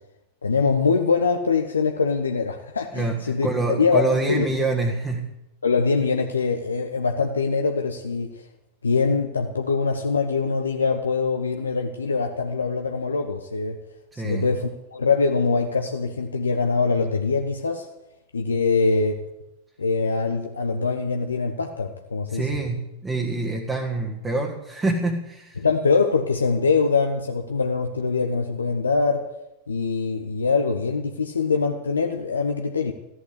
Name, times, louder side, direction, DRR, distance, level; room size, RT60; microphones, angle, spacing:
voice 1, 0.4-4.5 5.6-8.5 8.8-13.8 14.2-17.9 18.3-19.2 19.8-22.5 25.6-29.3 29.7-32.9, left 4 dB, 75° left, 4 dB, 1.1 m, -23 dB
voice 2, 2.9-5.3 14.1-14.5 22.3-25.7, right 3 dB, 15° right, 0 dB, 1.9 m, -26 dB
14.5 x 11.5 x 8.4 m, 0.89 s
figure-of-eight pair, 90°, 0 cm